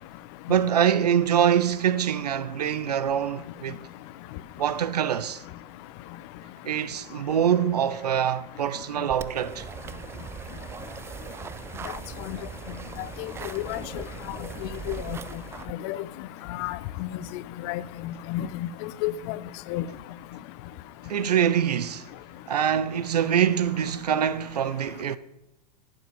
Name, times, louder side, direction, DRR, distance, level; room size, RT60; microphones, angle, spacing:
voice 1, 0.5-3.8 4.6-5.4 6.6-9.7 21.1-22.1 22.5-25.2, right 9 dB, 70° right, 0.8 m, -24 dB
sound 1, 9.1-15.7, right 7 dB, 10° right, 0.4 m, -39 dB
voice 2, 13.2-14.0 14.9-15.2 15.8-16.0 16.5-17.1 17.6-18.7 19.0-19.4 19.7-19.8, left 14 dB, 40° left, 0.7 m, -31 dB
11.5 x 10.0 x 5.4 m
figure-of-eight pair, 95°, 21 cm